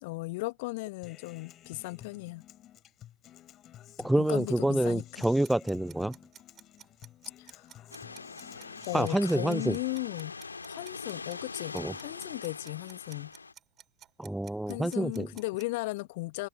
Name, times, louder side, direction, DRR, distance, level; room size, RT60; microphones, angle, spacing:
voice 1, 0.0-2.4 4.2-5.0 7.4-7.7 8.9-10.3 10.7-13.3 14.7-16.5, left 23 dB, 50° left, 1.1 m, -36 dB
Human voice / Acoustic guitar, 1.0-9.0, left 12 dB, 30° left, 2.9 m, -53 dB
voice 2, 4.0-6.2 8.9-9.8 11.7-11.9 14.2-15.3, right 1 dB, 5° right, 0.4 m, -27 dB
sound 1, 5.2-15.7, right 10 dB, 30° right, 3.3 m, -53 dB
sound 2, 7.9-13.5, left 4 dB, 75° left, 1.9 m, -43 dB
open air
figure-of-eight pair, 90°, 0 cm